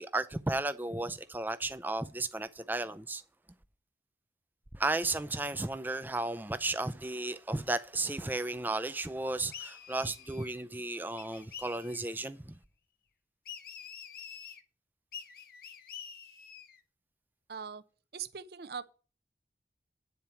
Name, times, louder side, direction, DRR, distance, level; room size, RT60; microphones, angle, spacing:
voice 1, 0.0-3.2 4.7-12.6, right 2 dB, 10° right, 0.4 m, -34 dB
sound 1, 9.5-10.6 11.2-12.1 13.4-14.6 15.1-16.8, left 8 dB, 55° left, 0.7 m, -47 dB
voice 2, 17.5-17.8 18.1-18.9, right 7 dB, 60° right, 0.6 m, -41 dB
9.4 x 4.4 x 7.0 m
head